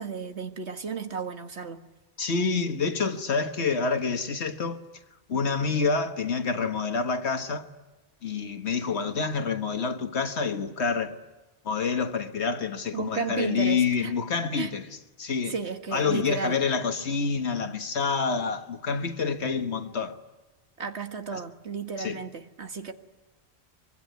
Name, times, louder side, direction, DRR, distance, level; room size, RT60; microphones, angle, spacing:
voice 1, 0.0-1.8 12.9-14.1 14.6-14.7 15.5-16.6 20.8-22.9, right 5 dB, 80° right, 1.9 m, -33 dB
voice 2, 2.2-4.8 5.3-7.7 8.2-11.2 11.7-14.9 15.2-15.5 15.9-20.2 21.3-21.4 22.0-22.2, left 5 dB, 75° left, 1.7 m, -27 dB
25.0 x 23.5 x 9.3 m
omnidirectional pair, 1.1 m